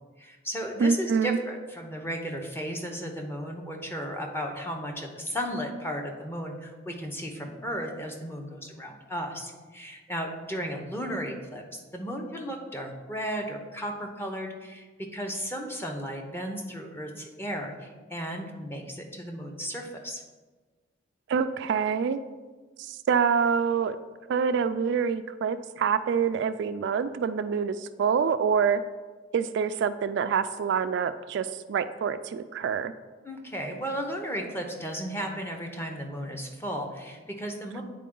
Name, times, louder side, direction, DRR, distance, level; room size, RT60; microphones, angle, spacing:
voice 1, 0.2-20.2 33.2-37.8, equal, 10° left, 2 dB, 0.8 m, -35 dB
voice 2, 0.8-1.4 21.3-22.2 22.8-24.0 24.3-28.8 29.3-32.9, right 6 dB, 65° right, 11 dB, 0.3 m, -26 dB
9.2 x 4.2 x 3.8 m, 1.3 s
head